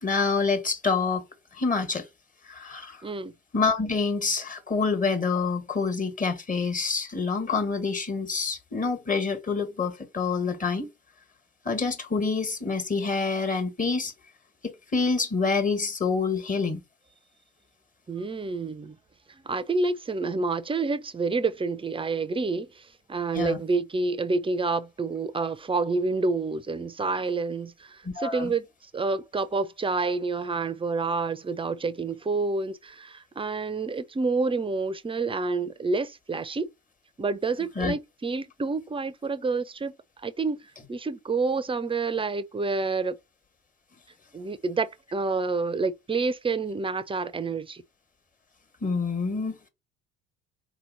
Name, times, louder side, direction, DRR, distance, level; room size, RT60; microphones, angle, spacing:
voice 1, 0.0-1.2 1.5-2.1 2.5-3.0 3.5-10.9 11.6-14.1 14.6-16.8 23.3-23.6 28.0-28.5 37.8-37.9 48.8-49.7, left 4 dB, 25° left, 1.5 m, -27 dB
voice 2, 3.0-3.3 18.1-19.0 19.3-28.7 28.9-36.7 37.2-39.9 40.2-43.2 44.3-47.8, right 3 dB, 20° right, 0.6 m, -28 dB
4.2 x 2.9 x 4.0 m
hypercardioid pair, 65°, 29 cm